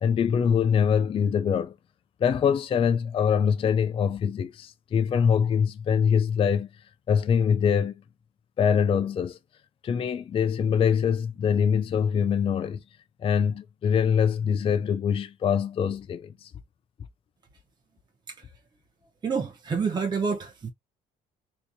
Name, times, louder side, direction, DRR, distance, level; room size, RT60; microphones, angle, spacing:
voice 1, 0.0-1.7 2.2-6.7 7.1-7.9 8.6-9.4 9.8-12.8 13.2-16.5, left 7 dB, 30° left, 0.4 m, -24 dB
voice 2, 19.2-20.7, right 5 dB, 25° right, 0.7 m, -28 dB
3.5 x 2.7 x 2.7 m
cardioid pair, 110°, 17 cm